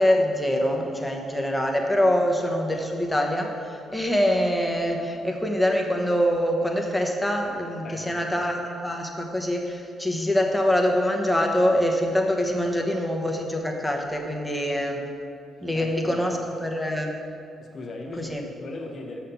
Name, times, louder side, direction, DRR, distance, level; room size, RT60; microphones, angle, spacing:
voice 1, 0.0-15.0 15.6-16.3 16.6-17.1 18.2-18.4, equal, 5° left, 1 dB, 1.1 m, -24 dB
voice 2, 7.8-8.2 12.6-13.0 15.7-16.3 17.6-19.2, left 2 dB, 45° left, 0 dB, 1.3 m, -38 dB
6.4 x 5.9 x 7.0 m, 2.5 s
cardioid pair, 90°, 0 cm